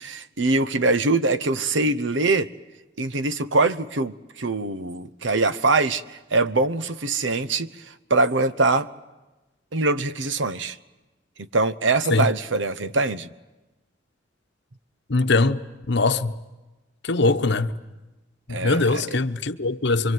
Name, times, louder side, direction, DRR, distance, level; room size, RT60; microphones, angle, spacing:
voice 1, 0.0-2.5 3.0-8.9 9.7-10.8 11.4-13.3 18.5-19.2, right 3 dB, 70° right, 0.9 m, -23 dB
voice 2, 15.1-15.6 15.9-16.3 17.0-17.7 18.5-20.1, left 3 dB, 65° left, 1.0 m, -21 dB
26.5 x 24.0 x 9.4 m
head